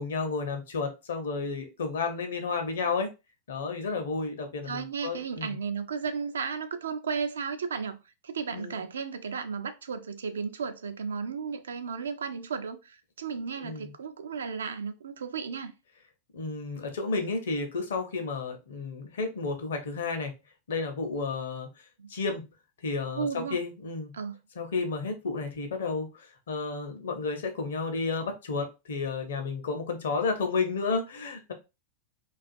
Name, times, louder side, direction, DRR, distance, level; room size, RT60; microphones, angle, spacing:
voice 1, 0.0-3.1 3.5-5.5 8.5-8.9 13.6-13.9 16.3-20.3 20.7-21.7 22.1-22.4 22.8-24.1 24.6-31.5, left 4 dB, 65° left, 0.6 m, -32 dB
voice 2, 4.7-8.0 8.2-15.7 22.0-22.1 23.1-23.6 24.1-24.3, right 6 dB, 70° right, 0.3 m, -34 dB
2.4 x 2.3 x 2.5 m
figure-of-eight pair, 90°, 0 cm